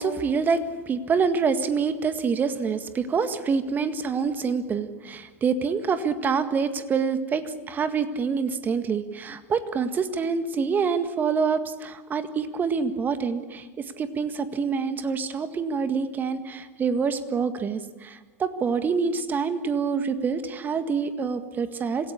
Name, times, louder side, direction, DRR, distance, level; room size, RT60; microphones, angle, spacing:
voice 1, 0.0-22.1, right 5 dB, 25° right, 10 dB, 1.8 m, -26 dB
26.5 x 17.0 x 8.6 m, 1.3 s
figure-of-eight pair, 90°, 8 cm